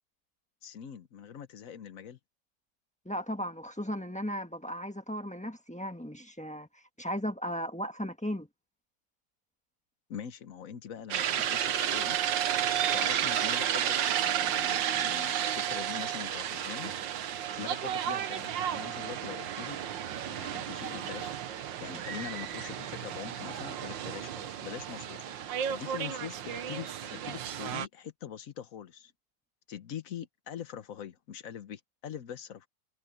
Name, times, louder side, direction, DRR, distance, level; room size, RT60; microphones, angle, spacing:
voice 1, 0.6-2.2 10.1-12.2 12.8-16.9 17.6-19.8 20.3-21.3 21.8-29.1 29.7-32.7, left 8 dB, 55° left, 1.3 m, -43 dB
voice 2, 3.0-8.5, equal, 5° left, 1.2 m, -36 dB
sound 1, 11.1-27.9, right 10 dB, 80° right, 1.7 m, -32 dB
omnidirectional pair, 2.0 m